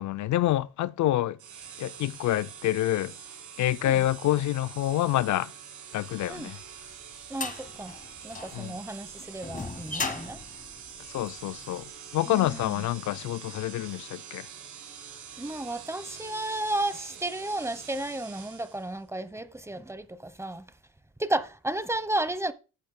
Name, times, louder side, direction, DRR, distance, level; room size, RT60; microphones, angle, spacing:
voice 1, 0.0-1.4 1.8-3.1 3.6-5.5 5.9-6.6 8.5-8.8 11.1-11.8 12.1-14.5, left 14 dB, 70° left, 0.5 m, -27 dB
sound 1, 1.4-19.0, right 7 dB, 85° right, 5.1 m, -45 dB
sound 2, 6.3-11.7, left 3 dB, 25° left, 1.8 m, -37 dB
voice 2, 7.3-7.9 8.2-10.4 12.3-12.9 15.4-20.6 21.2-22.5, right 1 dB, 10° right, 1.0 m, -33 dB
14.5 x 8.4 x 2.2 m
cardioid pair, 90°, 30 cm